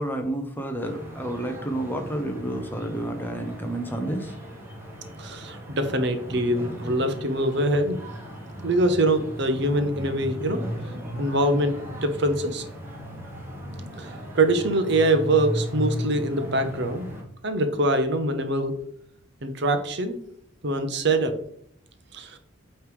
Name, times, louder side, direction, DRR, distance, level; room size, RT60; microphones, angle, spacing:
voice 1, 0.0-4.3, right 1 dB, 10° left, 4 dB, 0.8 m, -30 dB
sound 1, 0.8-17.2, equal, 10° right, 1.4 m, -36 dB
voice 2, 5.2-8.0 8.6-10.6 11.2-12.6 14.0-17.1 17.4-18.7 19.4-20.2 20.6-21.3 22.1-22.4, right 1 dB, 55° right, 8 dB, 0.9 m, -24 dB
8.3 x 3.3 x 5.0 m, 0.68 s
head